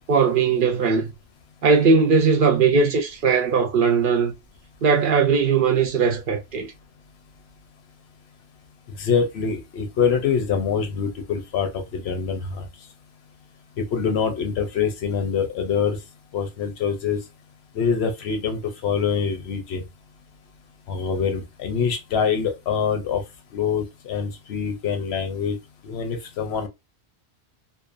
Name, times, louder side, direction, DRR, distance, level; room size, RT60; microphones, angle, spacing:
voice 1, 0.1-1.1 1.6-4.3 4.8-6.7, right 5 dB, 60° right, 0.6 m, -19 dB
voice 2, 9.0-12.7 13.8-16.0 16.3-17.2 17.7-19.8 20.9-23.2 23.5-25.6 25.8-26.7, left 6 dB, 75° left, 0.9 m, -25 dB
2.6 x 2.1 x 2.4 m
omnidirectional pair, 1.1 m